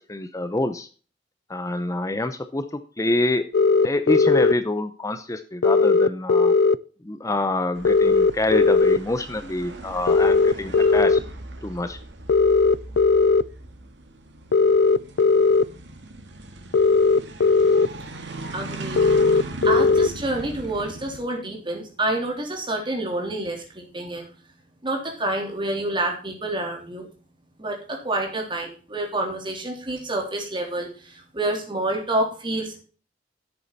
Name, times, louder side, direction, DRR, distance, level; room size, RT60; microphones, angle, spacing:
voice 1, 0.1-0.9 1.5-3.5 3.8-6.5 7.0-11.2 11.6-12.0, left 2 dB, 20° left, 10 dB, 0.7 m, -26 dB
sound 1, 3.5-4.5 5.6-6.8 7.8-9.0 10.1-11.2 12.3-13.4 14.5-15.6 16.7-17.9 19.0-20.1, left 4 dB, 65° left, 0.4 m, -17 dB
sound 2, 7.7-21.2, right 2 dB, 85° right, 2.0 m, -39 dB
voice 2, 18.5-24.3 24.8-27.1 27.6-32.8, right 1 dB, 30° right, 1 dB, 3.6 m, -28 dB
11.5 x 8.4 x 4.1 m, 0.39 s
head